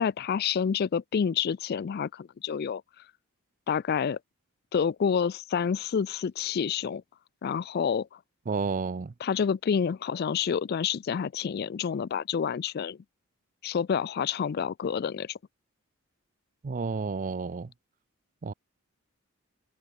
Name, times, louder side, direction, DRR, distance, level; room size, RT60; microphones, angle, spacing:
voice 1, 0.0-2.8 3.7-4.2 4.7-7.0 7.4-8.2 9.2-13.0 13.6-15.4, left 7 dB, 45° left, 0.3 m, -28 dB
voice 2, 8.5-9.1 16.6-17.7 18.4-18.5, right 4 dB, 35° right, 0.4 m, -31 dB
head